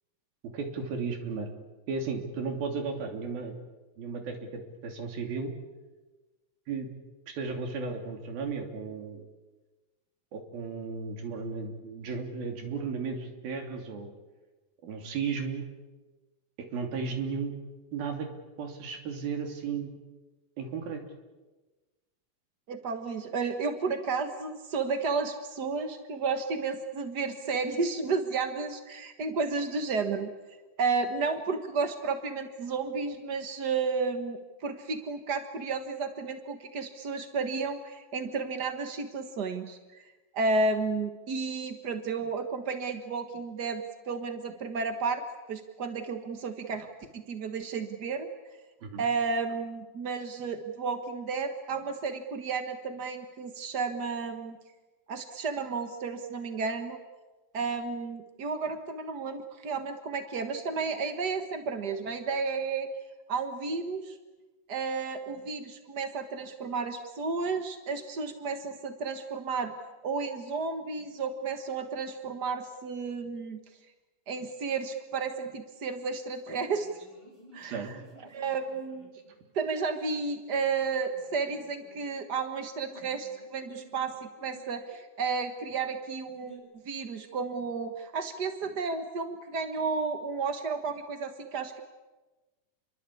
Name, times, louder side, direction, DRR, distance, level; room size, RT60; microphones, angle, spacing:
voice 1, 0.4-1.5 1.9-3.6 4.0-5.5 6.7-6.9 7.3-9.2 10.3-14.1 14.8-15.6 16.7-17.6 17.9-18.3 18.6-20.0 20.6-21.0 48.8-49.0 77.6-77.9, right 5 dB, 80° right, 4 dB, 4.8 m, -34 dB
voice 2, 22.7-30.3 30.8-40.0 40.3-45.2 45.5-46.9 47.1-48.3 49.0-54.6 55.1-57.0 57.5-62.9 63.3-64.2 64.7-69.7 70.0-73.6 74.3-76.9 77.5-77.9 78.3-79.2 79.5-91.8, right 4 dB, 60° right, 7 dB, 1.0 m, -32 dB
sound 1, 76.5-79.5 81.0-82.0 82.8-84.9 86.3-86.6, right 1 dB, 5° left, 6.8 m, -56 dB
29.0 x 23.0 x 8.5 m, 1.2 s
omnidirectional pair, 4.2 m